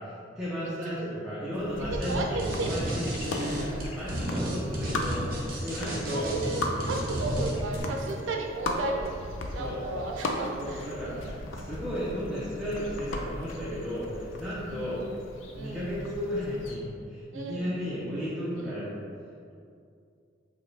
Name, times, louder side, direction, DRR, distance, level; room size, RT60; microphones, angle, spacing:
voice 1, 0.0-6.3 9.6-9.8 10.5-15.0 15.6-19.0, equal, ahead, -11 dB, 0.5 m, -34 dB
voice 2, 0.6-1.1 1.9-2.3 2.6-3.0 4.0-4.5 6.1-9.2 9.5-11.4 14.6-15.0 15.5-15.9 17.3-17.8 18.6-18.8, right 2 dB, 80° right, 1 dB, 0.4 m, -35 dB
sound 1, 1.5-16.8, left 1 dB, 75° left, 0.4 m, -37 dB
sound 2, 2.0-2.1 2.4-7.8, right 1 dB, 50° right, 0.7 m, -32 dB
4.8 x 2.2 x 3.2 m, 2.4 s
head